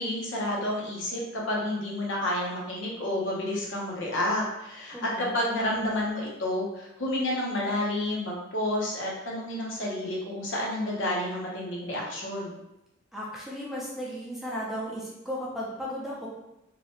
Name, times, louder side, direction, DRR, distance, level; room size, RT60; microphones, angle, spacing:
voice 1, 0.0-12.5, left 1 dB, 70° left, -3 dB, 0.7 m, -30 dB
voice 2, 4.9-5.4 13.1-16.3, equal, ahead, -6 dB, 0.5 m, -35 dB
2.8 x 2.1 x 2.8 m, 0.89 s
head